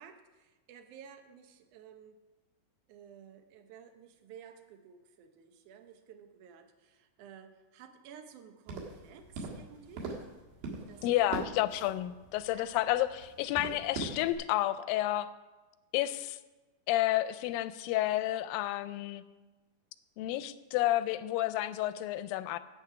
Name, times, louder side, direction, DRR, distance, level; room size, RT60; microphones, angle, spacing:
voice 1, 0.0-2.2 2.9-10.3 10.9-11.4 12.5-12.9, right 8 dB, 70° right, 7 dB, 2.2 m, -53 dB
sound 1, 8.7-14.3, right 3 dB, 90° right, 3.5 m, -42 dB
voice 2, 11.0-15.3 15.9-16.4 16.9-19.2 20.2-22.6, left 14 dB, 90° left, 14 dB, 2.3 m, -30 dB
9.9 x 8.4 x 5.7 m, 1.2 s
omnidirectional pair, 4.0 m